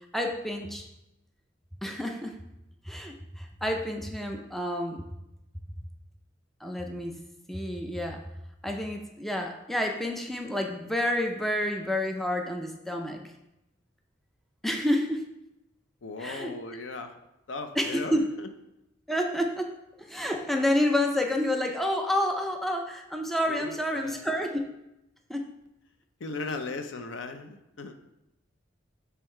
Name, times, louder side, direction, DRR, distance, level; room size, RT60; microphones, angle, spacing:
voice 1, 0.1-0.9 1.8-2.4 2.9-5.0 6.6-7.2 7.5-8.2 8.6-13.2 14.6-15.3 16.2-16.6 17.8-18.3 19.1-24.7 25.3-25.5, left 1 dB, ahead, 2 dB, 0.4 m, -29 dB
voice 2, 16.0-17.1 17.5-18.5 23.5-24.2 26.2-28.0, left 3 dB, 70° left, 8 dB, 0.5 m, -37 dB
6.5 x 3.4 x 4.4 m, 0.90 s
head